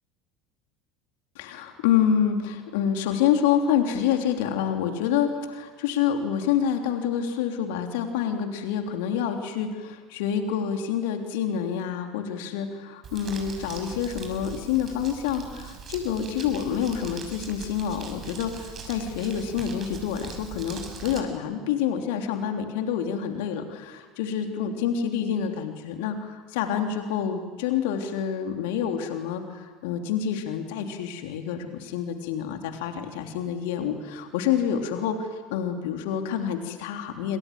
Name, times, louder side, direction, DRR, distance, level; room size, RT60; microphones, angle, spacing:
voice 1, 1.3-37.4, left 8 dB, 60° left, 4 dB, 3.3 m, -27 dB
Crumpling crinkling, 13.0-21.2, right 6 dB, 35° right, 6.8 m, -41 dB
28.0 x 26.0 x 7.7 m, 1.4 s
figure-of-eight pair, 70°, 0 cm